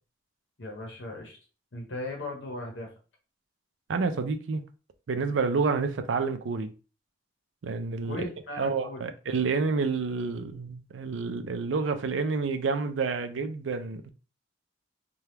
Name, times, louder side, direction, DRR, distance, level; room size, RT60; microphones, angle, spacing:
voice 1, 0.6-1.4 1.7-2.9 8.1-9.0, left 2 dB, 65° left, 0.8 m, -37 dB
voice 2, 3.9-4.6 5.1-6.7 7.6-8.2 8.6-14.1, right 4 dB, 75° right, 0.4 m, -29 dB
2.8 x 2.3 x 3.3 m
head